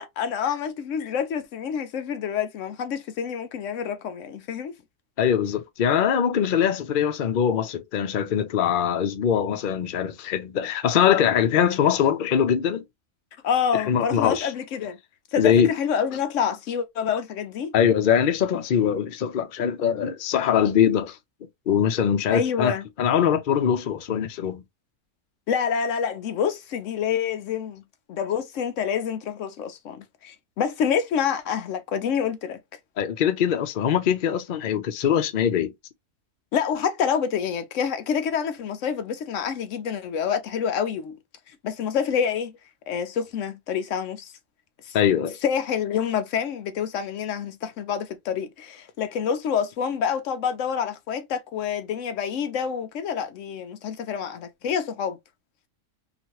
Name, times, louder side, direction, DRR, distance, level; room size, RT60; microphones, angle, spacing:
voice 1, 0.0-4.7 13.4-15.0 15.3-17.7 22.3-22.8 25.5-27.8 28.1-32.6 36.5-41.2 41.6-42.5 42.9-44.3 44.9-45.0 45.4-55.2, left 7 dB, 65° left, 0.8 m, -27 dB
voice 2, 5.2-12.8 13.7-14.5 15.4-15.7 17.7-21.2 21.7-22.7 23.0-24.6 33.0-35.7 44.9-45.4, left 8 dB, 80° left, 0.4 m, -22 dB
2.9 x 2.5 x 2.9 m
omnidirectional pair, 1.7 m